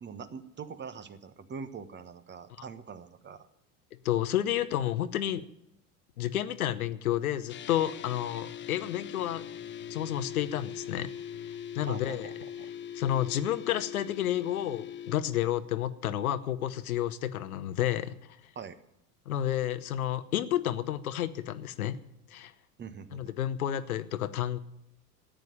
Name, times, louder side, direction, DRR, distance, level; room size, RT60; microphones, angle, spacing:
voice 1, 0.0-3.5 11.9-12.7 18.5-18.8 22.8-23.3, right 6 dB, 25° right, 11 dB, 1.3 m, -43 dB
voice 2, 4.0-5.5 6.2-9.4 9.9-11.1 11.7-12.3 12.9-18.1 19.3-22.0 22.3-22.5 23.1-24.6, left 12 dB, 70° left, 13 dB, 1.0 m, -30 dB
sound 1, 7.5-15.2, left 9 dB, 25° left, 0.8 m, -41 dB
14.0 x 9.3 x 9.9 m, 0.78 s
figure-of-eight pair, 75°, 45 cm